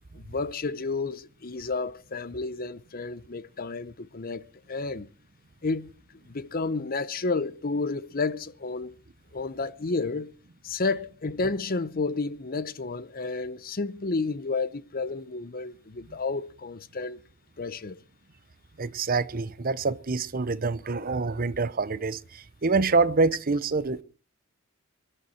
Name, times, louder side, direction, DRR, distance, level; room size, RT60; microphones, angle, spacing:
voice 1, 0.1-5.1 5.6-5.9 6.3-8.9 9.3-10.3 10.6-17.2 17.6-18.0, left 3 dB, 45° left, 0.7 m, -31 dB
voice 2, 18.8-24.0, right 4 dB, 40° right, 0.8 m, -26 dB
24.5 x 11.0 x 4.4 m
head